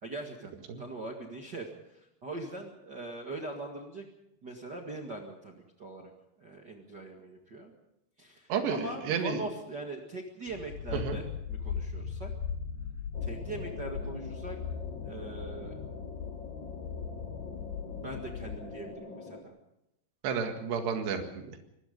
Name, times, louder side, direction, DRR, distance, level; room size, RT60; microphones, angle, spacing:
voice 1, 0.0-0.5 0.8-4.0 4.4-6.1 6.4-7.7 8.2-12.3 13.2-14.6 15.1-15.8 18.0-19.5, right 2 dB, 40° right, 1 dB, 1.5 m, -41 dB
voice 2, 8.5-9.4 10.9-11.2 20.2-21.6, right 6 dB, 80° right, 5 dB, 4.0 m, -31 dB
sound 1, 10.5-18.9, left 6 dB, 75° left, 3.1 m, -38 dB
sound 2, 13.1-19.4, left 3 dB, 55° left, 1.3 m, -45 dB
25.5 x 19.5 x 5.4 m, 0.84 s
omnidirectional pair, 4.9 m